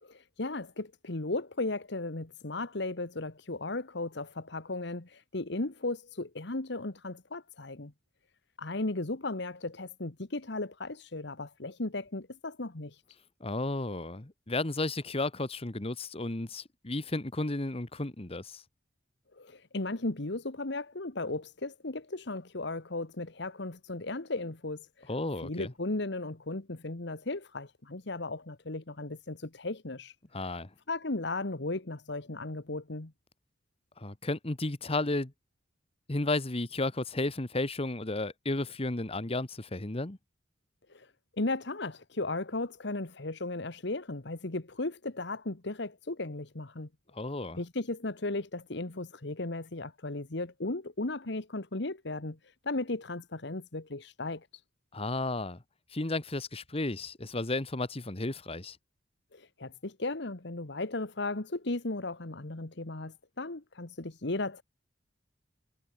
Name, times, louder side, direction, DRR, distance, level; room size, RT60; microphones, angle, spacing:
voice 1, 0.0-7.9 8.6-13.0 19.3-25.1 25.4-30.1 30.4-30.5 30.9-33.1 40.9-46.9 47.6-54.6 59.3-64.6, left 2 dB, 65° left, 1.6 m, -36 dB
voice 2, 13.4-18.6 25.1-25.7 30.3-30.7 34.0-35.3 36.1-40.2 47.1-47.6 54.9-55.6 55.9-58.8, left 2 dB, 30° left, 1.4 m, -33 dB
head